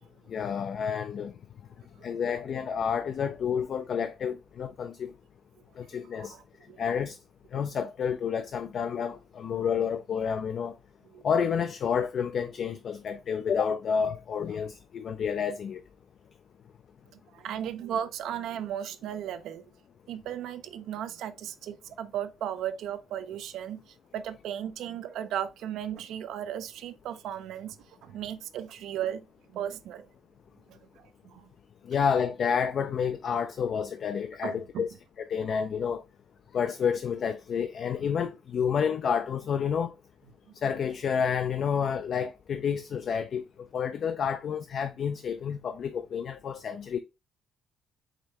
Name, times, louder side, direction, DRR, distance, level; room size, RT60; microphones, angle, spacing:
voice 1, 0.3-1.3 2.0-5.1 5.8-6.3 6.8-7.2 7.5-10.7 11.2-15.8 31.9-34.9 35.3-36.0 36.5-39.9 40.6-43.4 43.7-47.0, left 7 dB, 45° left, 0.3 m, -29 dB
voice 2, 5.9-6.4 6.7-6.8 11.1-11.2 17.1-19.6 20.1-27.8 28.0-29.2 29.5-30.1 30.7-31.5 34.4-34.9, right 10 dB, 75° right, 0.4 m, -36 dB
4.9 x 3.2 x 2.8 m
cardioid pair, 180°, 0 cm